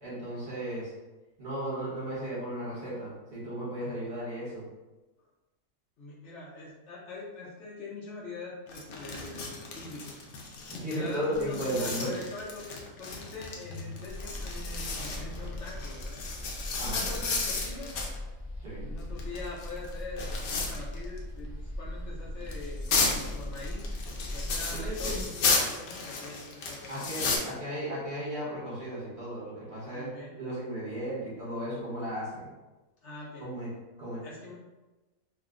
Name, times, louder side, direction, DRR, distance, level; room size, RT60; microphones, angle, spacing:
voice 1, 0.0-0.9 1.4-4.6 10.7-12.1 16.8-17.2 18.6-18.9 24.7-25.2 26.9-30.1 30.4-32.5 33.4-33.7 34.0-34.2, right 1 dB, 45° right, -7 dB, 1.2 m, -35 dB
voice 2, 6.0-10.2 10.8-16.2 16.8-17.9 18.8-21.5 21.8-23.9 24.3-27.2 29.8-30.4 33.0-33.4 34.2-34.5, left 3 dB, 60° left, -6 dB, 1.0 m, -43 dB
sound 1, 8.7-18.2 19.0-21.2 21.4-21.5 22.4-27.4, left 4 dB, 90° left, 1.1 m, -33 dB
sound 2, 14.1-25.3, left 1 dB, 30° left, 0.7 m, -39 dB
2.8 x 2.1 x 3.6 m, 1.1 s
omnidirectional pair, 1.5 m